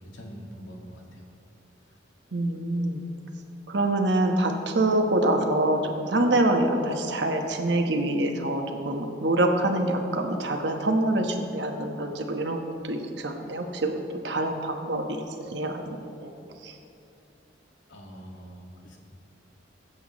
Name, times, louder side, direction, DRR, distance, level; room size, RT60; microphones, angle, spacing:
voice 1, 0.1-1.2 17.9-19.0, equal, 90° left, -1 dB, 1.9 m, -44 dB
voice 2, 2.3-3.0 3.7-14.0 14.2-15.2 15.5-16.3 16.6-16.7, right 1 dB, 65° right, 3 dB, 1.1 m, -25 dB
22.5 x 8.1 x 3.1 m, 2.7 s
head